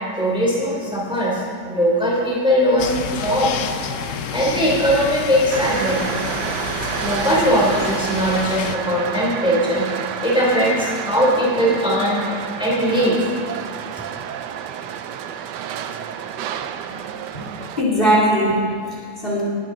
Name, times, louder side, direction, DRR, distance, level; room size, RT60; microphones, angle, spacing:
voice 1, 0.2-3.7 4.3-6.0 7.0-12.2 12.6-13.2, equal, 5° right, -5 dB, 3.0 m, -20 dB
sound 1, 2.8-8.8, left 7 dB, 60° left, 0.9 m, -29 dB
sound 2, 5.5-17.8, right 9 dB, 85° right, 1.3 m, -29 dB
voice 2, 17.8-19.4, equal, 30° left, -5 dB, 3.0 m, -20 dB
20.0 x 11.0 x 3.9 m, 2.3 s
omnidirectional pair, 1.8 m